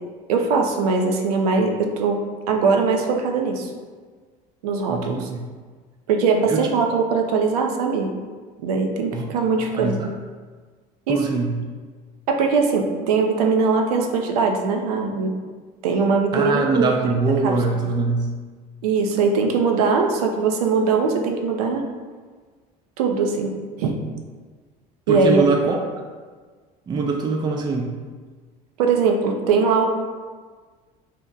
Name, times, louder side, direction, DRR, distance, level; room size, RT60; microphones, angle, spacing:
voice 1, 0.3-2.2 2.5-3.7 4.6-5.3 6.1-8.1 8.6-10.0 11.1-11.2 12.3-15.3 15.8-17.5 18.8-21.8 23.0-23.9 25.1-25.4 28.8-29.8, right 4 dB, 90° right, 3 dB, 0.4 m, -21 dB
voice 2, 4.9-5.4 6.5-6.7 9.1-9.3 9.8-10.1 11.1-11.6 16.3-18.4 25.1-25.8 26.9-28.0, right 4 dB, 25° right, 2 dB, 0.3 m, -23 dB
2.8 x 2.1 x 3.6 m, 1.5 s
supercardioid pair, 85°, 19 cm